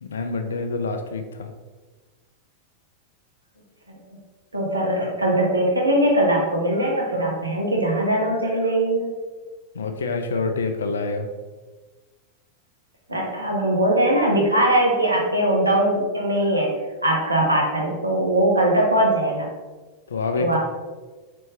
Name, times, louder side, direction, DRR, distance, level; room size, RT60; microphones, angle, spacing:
voice 1, 0.0-1.5 9.7-11.3 20.1-20.6, left 3 dB, 65° left, 6 dB, 0.4 m, -27 dB
voice 2, 4.5-9.1 13.1-16.7 17.0-19.5 20.4-20.6, right 1 dB, 80° right, -2 dB, 0.8 m, -21 dB
4.1 x 3.4 x 3.2 m, 1.3 s
figure-of-eight pair, 90°, 0 cm